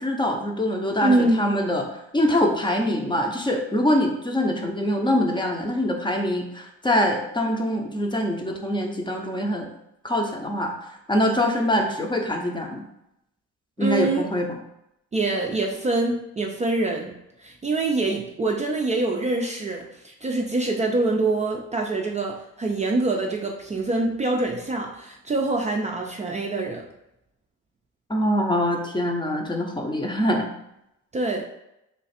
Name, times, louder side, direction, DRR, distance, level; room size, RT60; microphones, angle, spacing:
voice 1, 0.0-1.9 2.1-9.7 10.0-10.7 11.1-12.9 13.8-14.5 28.1-30.5, left 1 dB, 15° left, 2 dB, 0.6 m, -24 dB
voice 2, 1.0-1.4 13.8-14.2 15.1-26.8 31.1-31.4, right 2 dB, 25° right, 0 dB, 0.5 m, -25 dB
3.2 x 2.4 x 4.1 m, 0.84 s
cardioid pair, 85°, 30 cm